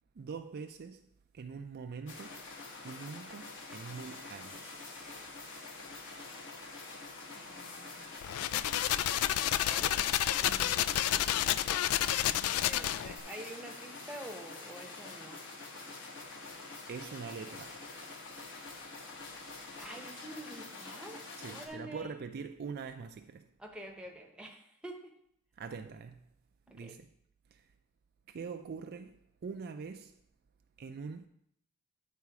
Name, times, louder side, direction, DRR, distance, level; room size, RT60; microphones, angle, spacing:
voice 1, 0.2-1.1 1.3-2.4 2.8-4.7 16.9-17.8 21.4-23.5 25.6-26.3 26.7-27.1 27.5-27.7 28.3-30.2 30.8-31.3, right 5 dB, 45° right, 0.4 m, -43 dB
sound 1, 2.1-21.7, left 3 dB, 55° left, 1.2 m, -46 dB
voice 2, 7.3-8.1 9.6-10.1 10.4-15.4 19.8-22.2 23.6-25.1 26.7-27.0, right 1 dB, 5° right, 0.9 m, -48 dB
sound 2, 8.2-13.2, left 12 dB, 70° left, 0.3 m, -30 dB
9.5 x 4.1 x 4.8 m
head